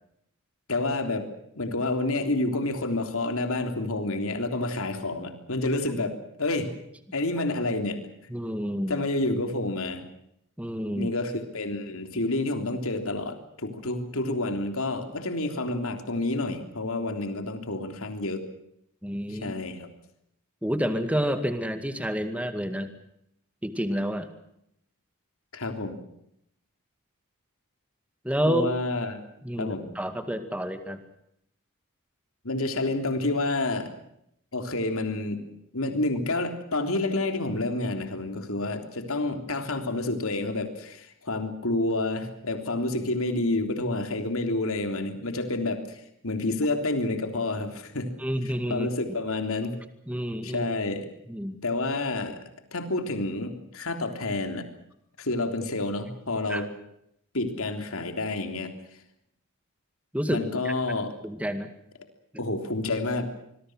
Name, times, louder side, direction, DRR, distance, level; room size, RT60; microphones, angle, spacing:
voice 1, 0.7-6.7 7.1-8.0 8.9-10.0 10.9-18.5 19.3-19.9 25.5-26.0 28.5-29.2 29.6-30.0 32.4-33.9 34.5-35.4 35.7-48.1 48.7-49.8 50.4-51.1 51.6-52.4 52.7-54.7 55.2-56.7 57.3-58.8 60.3-61.2 62.4-63.3, left 2 dB, 65° left, 6 dB, 3.5 m, -29 dB
voice 2, 8.3-9.0 10.6-11.1 19.0-19.5 20.6-22.9 23.6-24.3 28.2-28.7 29.4-31.0 48.2-48.9 50.1-50.7 51.3-51.5 56.5-56.6 60.1-60.7 61.2-61.7 62.3-62.4, equal, 5° right, 9 dB, 2.2 m, -29 dB
26.5 x 21.5 x 6.3 m, 0.75 s
head